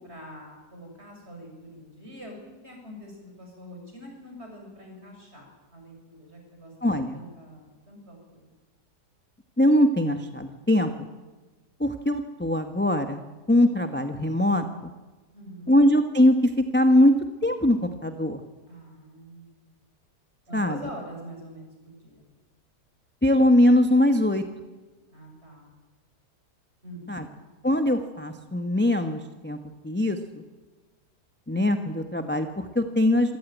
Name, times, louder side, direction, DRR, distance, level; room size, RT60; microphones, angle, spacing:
voice 1, 0.0-2.4 2.6-6.7 7.1-8.5 15.3-15.7 18.7-19.7 20.5-22.2 25.1-25.7 26.8-27.4, equal, 35° right, 1 dB, 6.9 m, -44 dB
voice 2, 6.8-7.2 9.6-10.9 11.8-14.6 15.7-17.1 17.4-18.4 20.5-20.8 23.2-24.4 27.1-27.3 27.6-29.6 29.8-30.4 31.5-33.4, left 1 dB, 10° left, 6 dB, 0.9 m, -22 dB
26.0 x 15.5 x 9.2 m, 1.2 s
omnidirectional pair, 1.8 m